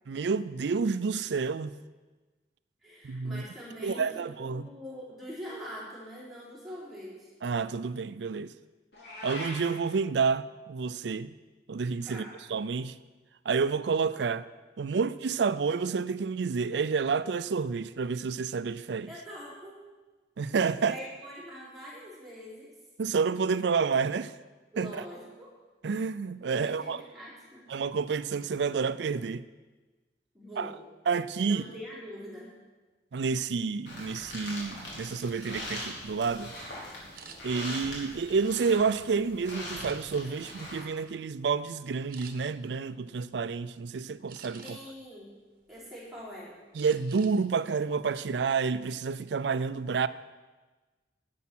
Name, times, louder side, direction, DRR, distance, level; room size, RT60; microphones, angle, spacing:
voice 1, 0.1-1.7 3.0-3.4 3.8-4.7 7.4-8.5 9.2-11.4 11.7-12.2 12.5-13.0 13.5-14.5 14.8-19.1 20.4-21.0 23.0-24.3 24.8-25.0 25.8-27.0 27.7-29.4 30.6-30.7 31.1-31.6 33.1-36.5 37.4-44.8 46.7-50.1, right 5 dB, 75° right, 0.4 m, -29 dB
voice 2, 2.8-7.3 12.1-12.4 19.1-19.8 20.8-22.7 24.7-25.5 26.6-27.7 30.3-30.8 31.4-32.6 44.6-45.4 45.7-46.6, equal, ahead, 4.0 m, -44 dB
Meow, 8.9-9.7, left 1 dB, 65° left, 3.0 m, -40 dB
sound 1, 33.9-40.8, left 1 dB, 80° left, 3.9 m, -41 dB
sound 2, 37.1-37.4 38.0-39.0 39.7-40.3 40.8-41.1 41.4-41.6 42.1-42.3 44.3-45.0 45.5-46.2 46.8-47.4 47.7-47.9 48.3-48.7, right 6 dB, 50° right, 1.1 m, -50 dB
11.0 x 8.5 x 6.1 m
head